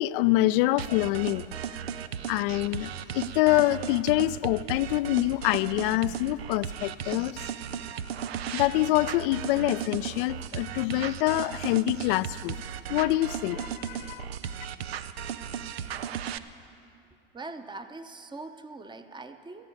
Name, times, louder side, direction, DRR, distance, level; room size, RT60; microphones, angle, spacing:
voice 1, 0.0-1.5 2.3-7.4 8.5-12.6 12.9-14.3, left 17 dB, 60° left, 18 dB, 0.4 m, -26 dB
sound 1, 0.8-16.4, right 8 dB, 80° right, 0.6 m, -36 dB
voice 2, 17.3-19.7, right 3 dB, 15° right, 9 dB, 0.8 m, -42 dB
18.0 x 13.5 x 5.3 m, 2.6 s
hypercardioid pair, 85°, 30 cm